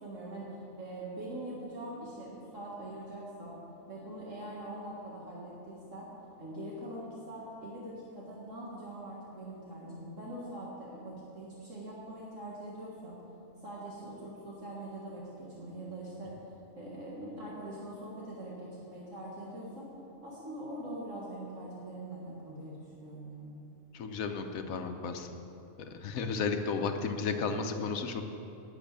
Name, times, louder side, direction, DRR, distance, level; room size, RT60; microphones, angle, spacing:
voice 1, 0.0-3.6 3.9-6.1 6.4-13.2 13.6-16.4 16.8-19.9 20.2-23.4, right 1 dB, 65° right, -5 dB, 2.0 m, -43 dB
voice 2, 23.9-25.3 26.0-28.2, left 5 dB, 85° left, 6 dB, 1.3 m, -33 dB
12.0 x 7.1 x 8.9 m, 2.7 s
omnidirectional pair, 1.4 m